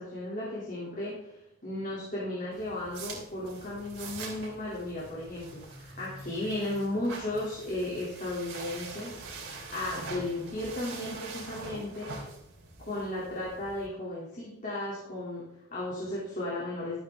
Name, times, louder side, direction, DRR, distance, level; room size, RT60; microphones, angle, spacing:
voice 1, 0.0-1.4 1.6-12.2 12.9-17.0, left 1 dB, 35° left, -6 dB, 2.5 m, -35 dB
sound 1, 2.5-13.9, right 3 dB, 55° right, 3.4 m, -44 dB
12.5 x 8.6 x 3.5 m, 0.85 s
head